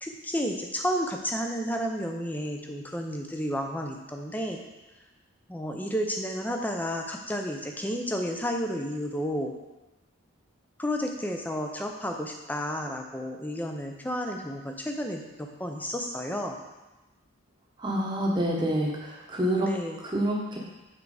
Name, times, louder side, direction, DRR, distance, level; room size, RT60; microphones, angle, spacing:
voice 1, 0.0-4.6 5.5-9.5 10.8-16.6 19.6-20.0, equal, 10° left, 2 dB, 0.6 m, -31 dB
voice 2, 17.8-19.7 20.1-20.6, right 1 dB, 20° right, -2 dB, 1.0 m, -27 dB
7.5 x 4.6 x 4.9 m, 1.1 s
head